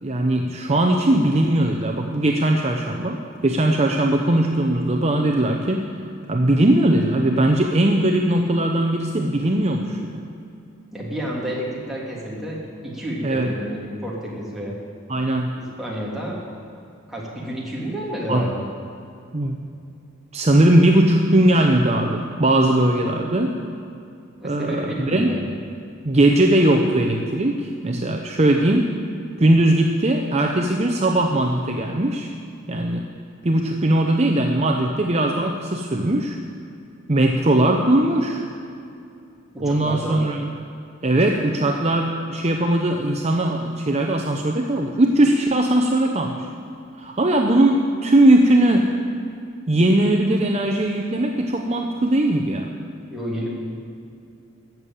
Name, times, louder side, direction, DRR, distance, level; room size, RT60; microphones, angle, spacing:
voice 1, 0.0-5.9 6.3-10.1 13.2-13.5 15.1-15.6 18.3-18.5 19.3-19.6 20.3-23.6 24.4-25.4 26.0-28.9 29.4-32.3 32.7-33.0 33.4-36.4 37.1-38.4 39.6-40.5 41.0-46.5 47.0-49.0 49.7-52.7, right 1 dB, 30° right, 2 dB, 0.7 m, -19 dB
voice 2, 10.9-14.8 15.6-16.4 17.1-18.7 24.4-25.5 39.5-40.2 53.1-53.5, equal, ahead, -6 dB, 3.0 m, -30 dB
15.0 x 7.2 x 9.1 m, 2.5 s
head